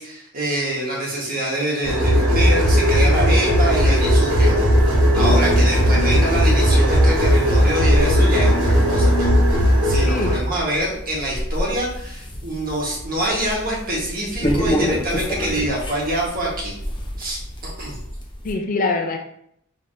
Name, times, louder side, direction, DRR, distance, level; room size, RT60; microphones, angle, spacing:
voice 1, 0.0-4.6 5.1-16.8 17.2-18.0, right 1 dB, 45° right, -3 dB, 1.4 m, -25 dB
sound 1, 1.8-10.4, equal, 60° right, 1.2 m, -16 dB
sound 2, 3.0-18.5, equal, 25° left, 0.8 m, -30 dB
sound 3, 3.8-9.9, equal, 60° left, 1.4 m, -33 dB
voice 2, 5.1-5.7 10.0-10.3 18.4-19.2, left 3 dB, 40° left, 3 dB, 0.4 m, -24 dB
5.6 x 3.2 x 2.7 m, 0.70 s
head